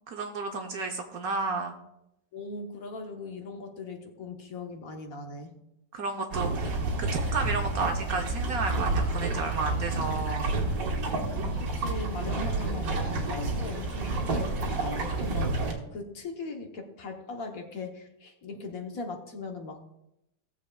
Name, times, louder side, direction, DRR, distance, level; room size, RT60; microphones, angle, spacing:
voice 1, 0.1-1.8 5.9-10.6, right 4 dB, 60° right, 3 dB, 1.1 m, -32 dB
voice 2, 2.3-5.5 11.4-19.8, left 3 dB, 55° left, 3 dB, 1.4 m, -39 dB
sound 1, 6.3-15.7, right 2 dB, 85° right, 2.2 m, -29 dB
18.0 x 7.4 x 2.3 m, 0.86 s
omnidirectional pair, 1.9 m